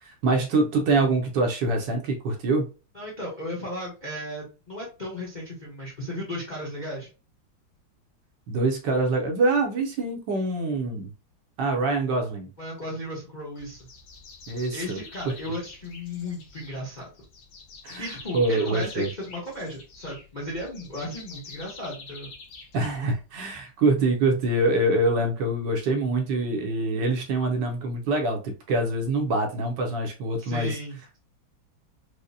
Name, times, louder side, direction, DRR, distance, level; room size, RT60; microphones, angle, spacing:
voice 1, 0.0-2.6 8.5-11.1 11.6-12.5 14.5-15.0 17.8-19.1 22.7-30.7, right 2 dB, 70° right, 3 dB, 1.2 m, -25 dB
voice 2, 2.9-7.1 12.6-13.9 14.7-17.1 18.0-22.3 30.4-31.2, left 1 dB, 45° left, -3 dB, 0.6 m, -35 dB
sound 1, 13.6-23.4, left 4 dB, 70° left, 1.6 m, -46 dB
4.8 x 2.1 x 2.5 m, 0.32 s
omnidirectional pair, 2.2 m